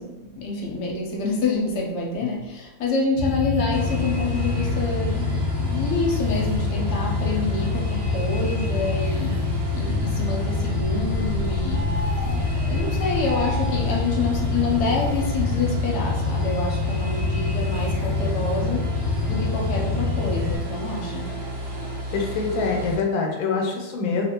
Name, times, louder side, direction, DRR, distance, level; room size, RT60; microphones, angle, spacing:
voice 1, 0.0-21.4, left 3 dB, 65° left, -1 dB, 1.1 m, -27 dB
sound 1, 3.2-20.6, left 4 dB, 90° right, 1.5 m, -26 dB
sound 2, 3.7-23.0, right 1 dB, 50° right, 0.9 m, -32 dB
sound 3, 10.8-15.4, right 1 dB, 50° left, 0.7 m, -35 dB
voice 2, 22.1-24.2, left 4 dB, 90° left, 1 dB, 1.4 m, -25 dB
3.3 x 2.5 x 2.9 m, 1.1 s
omnidirectional pair, 2.1 m